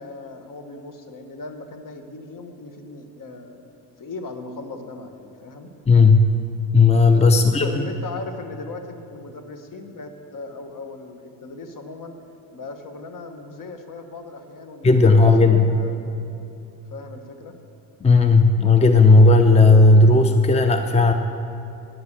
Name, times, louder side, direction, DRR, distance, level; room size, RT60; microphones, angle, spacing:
voice 1, 0.0-3.6 4.0-5.7 7.3-12.1 12.5-16.0 16.9-17.5, left 3 dB, 45° left, 6 dB, 1.5 m, -38 dB
voice 2, 5.9-6.3 6.7-7.9 14.8-15.7 18.0-21.1, left 3 dB, 15° left, 7 dB, 0.7 m, -14 dB
10.5 x 9.6 x 6.7 m, 2.7 s
supercardioid pair, 65°, 43 cm